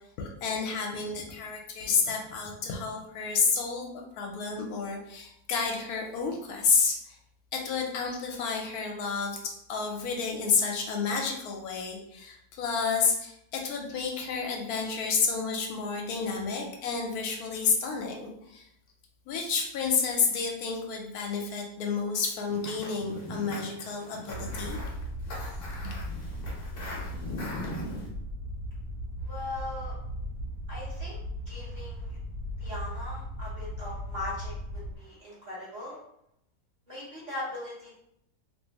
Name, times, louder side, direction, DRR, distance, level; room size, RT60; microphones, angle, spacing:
voice 1, 0.2-7.2 7.5-18.2 18.5-18.6 19.3-24.8 25.8-25.9, left 5 dB, 80° left, 1 dB, 1.1 m, -30 dB
sound 1, 22.5-28.1, left 1 dB, 50° left, 0.8 m, -40 dB
sound 2, 24.3-34.9, equal, 75° right, 1.2 m, -37 dB
voice 2, 29.2-29.9 30.7-31.2 31.5-32.2 32.6-36.0 36.9-37.9, left 2 dB, 35° right, -8 dB, 1.1 m, -39 dB
2.9 x 2.6 x 2.8 m, 0.76 s
omnidirectional pair, 1.6 m